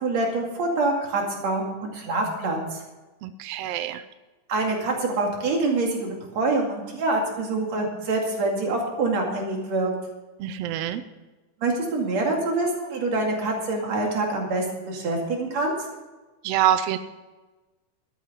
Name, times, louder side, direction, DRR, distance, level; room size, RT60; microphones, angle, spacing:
voice 1, 0.0-2.8 4.5-9.9 11.6-15.7, right 2 dB, 60° right, 0 dB, 3.4 m, -25 dB
voice 2, 3.2-4.0 10.4-11.0 16.4-17.0, right 11 dB, 80° right, 11 dB, 1.4 m, -25 dB
12.5 x 9.4 x 5.8 m, 1.2 s
omnidirectional pair, 3.6 m